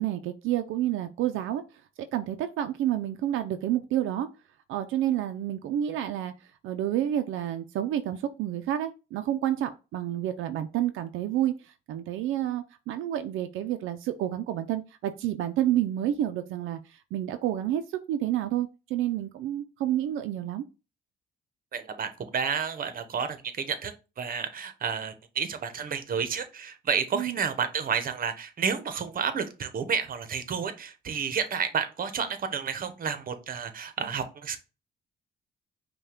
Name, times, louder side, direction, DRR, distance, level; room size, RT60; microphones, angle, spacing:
voice 1, 0.0-1.6 2.1-4.3 4.7-6.3 6.6-20.6 27.1-27.4, right 12 dB, 85° right, 8 dB, 0.4 m, -29 dB
voice 2, 21.7-23.9 24.2-34.6, right 6 dB, 45° right, 10 dB, 0.8 m, -31 dB
5.4 x 2.3 x 3.6 m, 0.30 s
cardioid pair, 90°, 20 cm